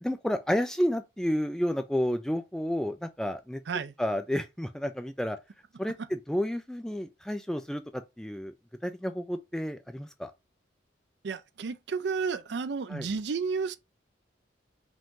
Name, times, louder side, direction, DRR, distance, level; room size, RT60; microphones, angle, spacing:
voice 1, 0.0-3.6 4.0-5.4 5.8-8.5 8.8-10.3 12.9-13.1, equal, 5° left, 0.3 m, -31 dB
voice 2, 11.2-13.8, right 5 dB, 65° right, 0.4 m, -32 dB
5.1 x 2.6 x 3.6 m
head